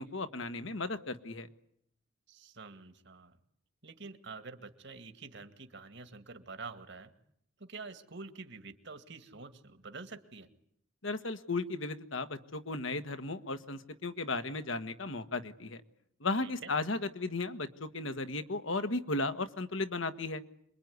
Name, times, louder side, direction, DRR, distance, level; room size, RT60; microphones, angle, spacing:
voice 1, 0.0-1.5 11.0-15.8 16.2-20.4, left 3 dB, 65° left, 9 dB, 1.5 m, -35 dB
voice 2, 2.3-3.4 3.8-7.1 7.6-10.5 16.4-16.7, right 4 dB, 60° right, 9 dB, 2.1 m, -47 dB
27.0 x 22.5 x 9.6 m, 0.71 s
head